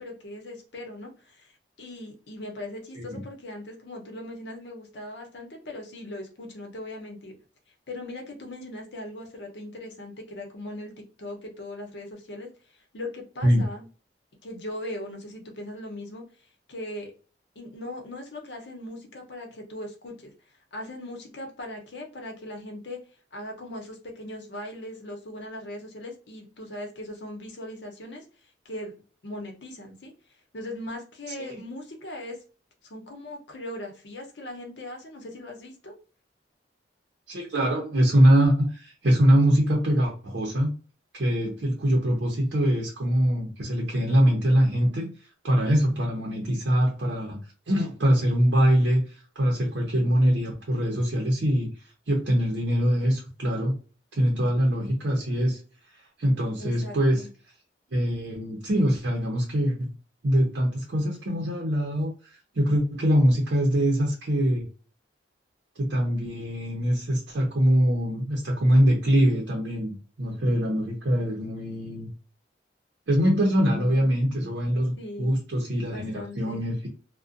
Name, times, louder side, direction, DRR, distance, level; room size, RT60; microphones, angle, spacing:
voice 1, 0.0-1.5 1.8-7.4 7.9-13.9 14.4-16.2 16.7-17.1 17.6-20.3 20.7-23.0 23.3-28.2 28.6-28.9 29.2-30.1 30.5-32.4 32.8-35.9 56.6-57.3 75.0-75.3 75.9-76.6, left 1 dB, 70° left, 1 dB, 0.8 m, -39 dB
voice 2, 37.3-40.7 41.1-45.1 45.4-47.4 47.7-49.0 49.4-51.7 52.1-53.8 54.1-55.6 56.2-57.3 57.9-59.9 60.2-62.1 62.5-64.7 65.8-72.1 73.1-76.9, equal, 70° right, -1 dB, 0.6 m, -23 dB
2.4 x 2.1 x 2.5 m, 0.36 s
head